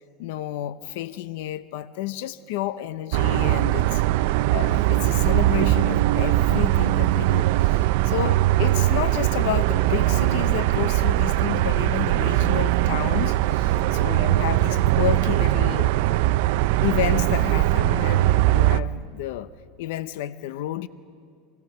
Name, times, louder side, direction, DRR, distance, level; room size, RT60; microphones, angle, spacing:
voice 1, 0.2-4.0 4.5-15.9 16.8-19.5 19.8-20.9, left 13 dB, 75° left, 14 dB, 0.7 m, -30 dB
sound 1, 3.1-18.8, right 15 dB, 70° right, 0.5 m, -21 dB
28.0 x 17.5 x 6.8 m, 2.2 s
supercardioid pair, 135°, 0 cm